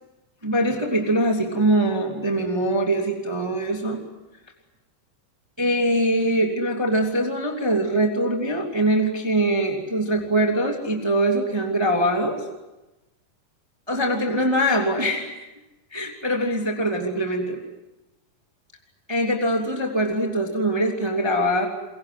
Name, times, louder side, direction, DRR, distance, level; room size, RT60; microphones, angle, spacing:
voice 1, 0.4-4.0 5.6-12.4 13.9-15.4 15.9-17.6 19.1-21.7, right 1 dB, 10° right, 1 dB, 2.5 m, -23 dB
29.0 x 23.0 x 7.9 m, 1.0 s
omnidirectional pair, 3.8 m